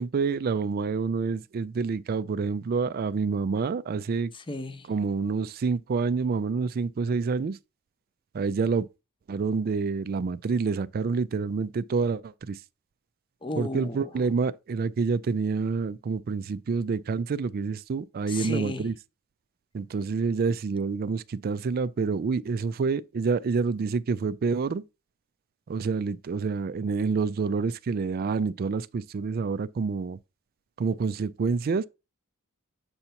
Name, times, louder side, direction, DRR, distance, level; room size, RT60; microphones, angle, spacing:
voice 1, 0.0-4.3 4.9-7.6 8.3-8.9 9.3-12.6 13.6-18.9 19.7-24.8 25.7-30.2 30.8-31.8, right 4 dB, 40° right, 0.3 m, -28 dB
voice 2, 4.3-4.9 13.4-14.1 18.3-18.9, left 2 dB, 20° left, 0.7 m, -34 dB
7.8 x 2.8 x 5.7 m
head